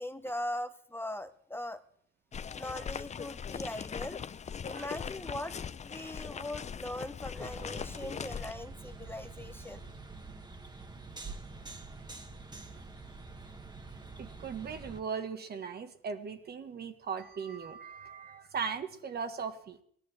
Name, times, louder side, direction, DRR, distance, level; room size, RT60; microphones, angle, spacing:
voice 1, 0.0-1.8 2.5-4.2 4.6-5.5 5.8-9.8, left 1 dB, 10° left, 9 dB, 0.9 m, -40 dB
sound 1, 2.3-8.5, left 7 dB, 35° left, 0.6 m, -40 dB
sound 2, 7.4-15.0, right 3 dB, 20° right, 1.5 m, -46 dB
voice 2, 14.2-19.8, right 6 dB, 55° right, 8 dB, 1.6 m, -38 dB
16.5 x 11.5 x 7.5 m, 0.64 s
cardioid pair, 90°, 20 cm